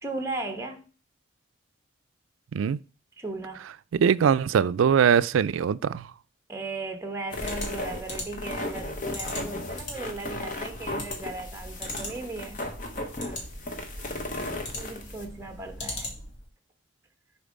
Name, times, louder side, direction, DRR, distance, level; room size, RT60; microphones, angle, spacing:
voice 1, 0.0-0.9 3.2-3.7 6.5-12.6 13.2-13.5 14.6-16.1, right 3 dB, 15° right, 1.0 m, -37 dB
voice 2, 3.9-6.1, right 7 dB, 80° right, 0.3 m, -22 dB
sound 1, 7.3-16.5, left 1 dB, 65° left, 2.5 m, -40 dB
sound 2, 7.3-15.2, left 2 dB, 40° left, 0.9 m, -36 dB
6.8 x 4.4 x 5.2 m
head